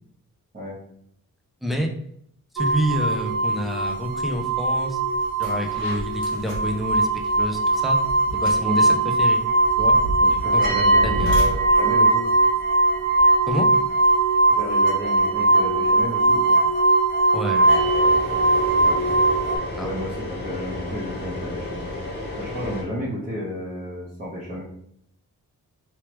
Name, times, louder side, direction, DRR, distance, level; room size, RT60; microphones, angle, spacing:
voice 1, 1.6-1.9 2.5-5.0 5.4-8.0 8.3-9.4 9.8-10.0 10.5-11.4 13.5-13.7 17.3-17.7 19.8-19.9, equal, ahead, 2 dB, 0.5 m, -28 dB
sound 1, 2.6-19.6, right 2 dB, 75° right, 0.9 m, -20 dB
sound 2, 4.7-4.8 5.2-13.5, right 1 dB, 90° left, 1.2 m, -33 dB
voice 2, 10.2-12.2 14.4-16.6 18.8-19.2 19.8-21.9 22.4-24.6, equal, 25° right, -10 dB, 1.1 m, -32 dB
sound 3, 17.6-22.8, left 2 dB, 30° left, 1.0 m, -33 dB
3.3 x 3.1 x 3.0 m, 0.69 s
wide cardioid pair, 150°, 34 cm